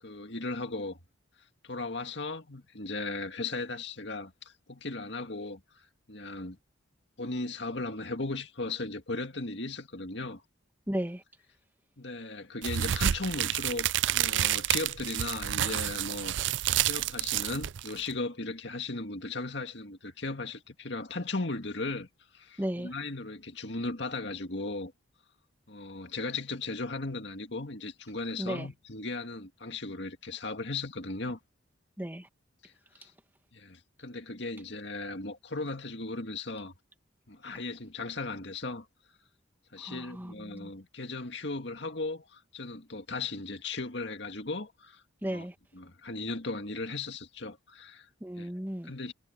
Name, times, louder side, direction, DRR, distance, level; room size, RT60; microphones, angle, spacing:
voice 1, 0.0-1.0 1.6-5.6 6.1-6.6 7.2-10.4 12.0-16.3 16.8-22.1 22.3-24.9 25.7-31.4 32.6-32.7 33.0-33.1 33.5-36.7 37.3-38.9 39.7-45.5 45.7-48.1 48.4-48.5 48.8-49.1, left 3 dB, 60° left, 2.2 m, -37 dB
voice 2, 10.9-11.2 22.6-22.9 28.4-28.7 32.0-32.3 39.8-40.7 45.2-45.5 48.2-48.9, equal, 10° right, 1.7 m, -35 dB
sound 1, 12.6-18.1, right 12 dB, 65° right, 0.4 m, -29 dB
head